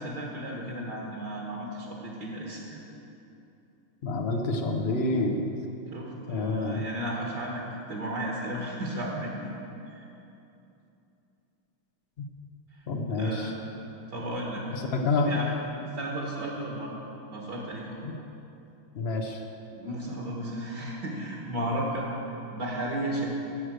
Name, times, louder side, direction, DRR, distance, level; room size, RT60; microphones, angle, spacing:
voice 1, 0.0-2.8 5.9-7.6 7.9-9.5 9.9-10.1 12.8-12.9 13.2-14.6 15.1-15.5 15.9-16.9 17.3-18.0 19.7-23.3, right 1 dB, 55° right, -2 dB, 1.9 m, -34 dB
voice 2, 4.0-5.4 6.3-6.8 12.9-13.5 14.9-15.3 18.0-18.1 18.9-19.4, left 3 dB, 85° left, 2 dB, 0.5 m, -28 dB
13.5 x 6.6 x 7.8 m, 2.8 s
omnidirectional pair, 2.4 m